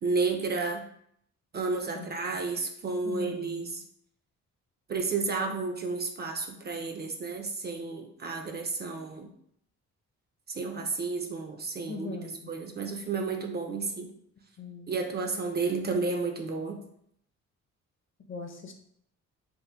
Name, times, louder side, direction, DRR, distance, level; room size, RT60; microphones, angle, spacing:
voice 1, 0.0-0.9 1.5-3.8 4.9-9.3 10.5-12.2 12.5-14.1 14.9-16.8, right 4 dB, 35° right, 3 dB, 0.4 m, -31 dB
voice 2, 3.0-3.7 11.9-12.5 14.6-14.9 18.3-18.7, left 3 dB, 40° left, 3 dB, 0.6 m, -40 dB
2.8 x 2.1 x 3.2 m, 0.70 s
cardioid pair, 90°, 30 cm